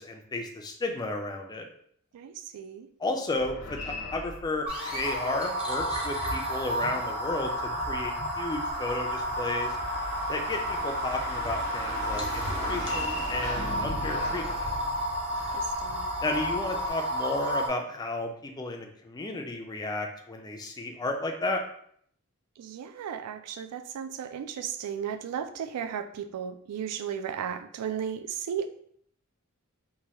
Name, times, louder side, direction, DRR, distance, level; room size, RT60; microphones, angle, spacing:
voice 1, 0.0-1.7 3.0-7.5 7.9-9.8 10.3-14.7 16.2-21.6, left 2 dB, 20° left, 3 dB, 0.3 m, -33 dB
voice 2, 2.1-2.9 15.5-16.1 22.6-28.7, right 8 dB, 85° right, 12 dB, 0.3 m, -35 dB
sound 1, 3.3-5.3 6.0-8.4 12.5-15.6, left 2 dB, 75° left, 0.8 m, -40 dB
sound 2, 4.7-17.7, equal, 25° right, 0.7 m, -31 dB
Car / Engine, 8.7-16.9, equal, 60° right, 1.5 m, -41 dB
3.1 x 2.2 x 2.8 m, 0.66 s
head